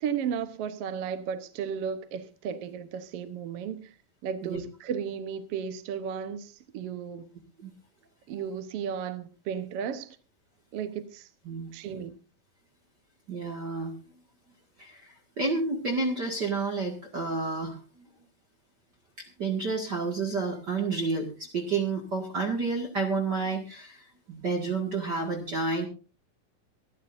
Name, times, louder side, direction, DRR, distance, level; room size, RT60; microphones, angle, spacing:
voice 1, 0.0-3.9 4.2-7.3 8.3-10.2 10.7-11.3 11.7-12.1, right 7 dB, 75° right, 1.4 m, -34 dB
voice 2, 13.3-13.9 14.8-18.1 19.2-25.9, right 3 dB, 35° right, 1.9 m, -30 dB
24.5 x 11.5 x 2.6 m
omnidirectional pair, 4.2 m